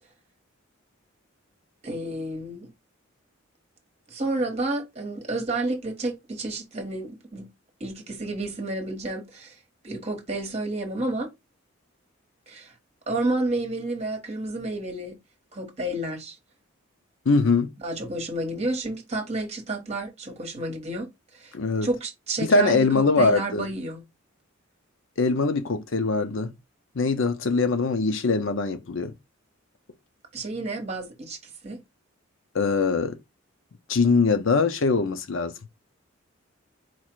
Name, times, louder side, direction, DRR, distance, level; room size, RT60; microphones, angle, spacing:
voice 1, 1.8-2.7 4.1-7.5 7.8-9.6 9.8-11.3 12.5-12.7 13.1-15.2 15.5-16.4 17.8-21.1 21.3-21.5 21.8-24.0 30.3-31.8, right 2 dB, 30° right, 1.2 m, -30 dB
voice 2, 17.3-17.7 21.5-21.9 22.5-23.7 25.2-26.5 27.0-29.1 32.5-33.2 33.9-35.5, left 3 dB, 65° left, 0.6 m, -22 dB
4.4 x 2.4 x 4.5 m
head